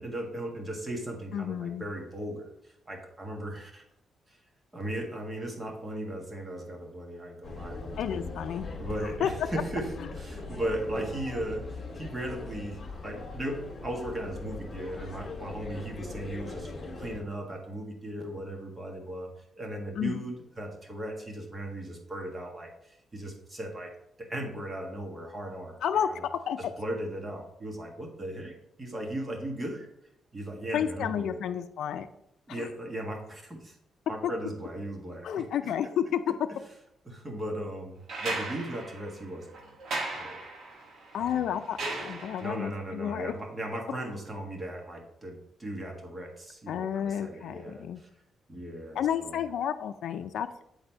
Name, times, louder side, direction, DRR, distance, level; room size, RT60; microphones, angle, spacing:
voice 1, 0.0-3.8 4.7-8.4 8.8-25.8 26.8-28.5 28.8-29.9 30.3-31.4 32.5-33.8 34.1-35.3 35.6-35.7 37.1-39.8 40.1-40.4 41.2-41.5 42.4-48.1 48.5-49.4, right 1 dB, 20° right, 1 dB, 1.6 m, -37 dB
voice 2, 1.3-1.9 8.0-8.7 9.0-9.3 10.0-10.1 19.9-20.2 25.8-26.6 30.7-32.1 32.5-32.7 35.2-36.2 41.1-43.3 46.7-48.0 48.9-50.5, left 9 dB, 80° left, 8 dB, 0.4 m, -31 dB
sound 1, 7.4-17.2, left 3 dB, 35° left, 2.0 m, -40 dB
sound 2, 38.1-42.7 44.3-44.4, right 2 dB, 65° right, 1.5 m, -37 dB
8.5 x 4.1 x 4.5 m, 0.78 s
cardioid pair, 115°, 0 cm